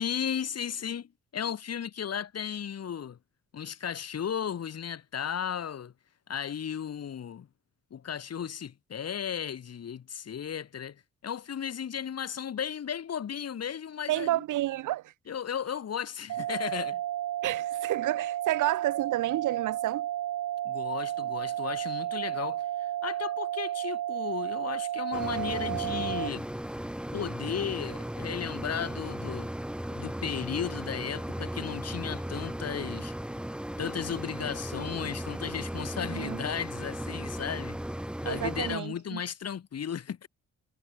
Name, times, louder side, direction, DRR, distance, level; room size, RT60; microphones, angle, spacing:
voice 1, 0.0-3.2 3.5-5.9 6.3-7.5 7.9-14.4 15.3-17.0 20.6-26.5 27.1-29.5 29.9-33.1 33.8-37.8 38.2-40.3, left 8 dB, 55° left, 7.8 m, -35 dB
voice 2, 14.1-15.1 17.4-20.1 21.2-21.3 36.0-36.4 38.3-39.2, right 15 dB, 85° right, 3.4 m, -30 dB
sound 1, 16.3-26.3, right 12 dB, 70° right, 1.6 m, -32 dB
sound 2, 25.1-38.8, equal, 5° right, 2.4 m, -36 dB
cardioid pair, 90°, 30 cm